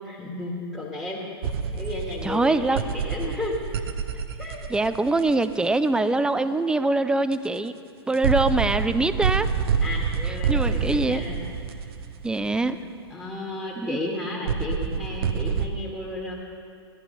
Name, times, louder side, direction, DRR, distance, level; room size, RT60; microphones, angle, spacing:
voice 1, 0.0-1.2 1.7-3.6 4.4-4.7 9.8-11.4 11.8-11.9 12.6-12.7 13.1-16.3, left 2 dB, 10° left, -5 dB, 2.1 m, -33 dB
sound 1, 1.4-5.5 7.3-7.4 8.1-12.7 14.5-15.7, right 6 dB, 60° right, 0.8 m, -27 dB
voice 2, 2.2-2.8 4.7-7.7 8.1-9.5 10.3-11.2 12.2-12.8 13.9-14.0, right 2 dB, 5° right, 12 dB, 0.4 m, -23 dB
14.5 x 10.5 x 5.4 m, 2.4 s
hypercardioid pair, 110°, 14 cm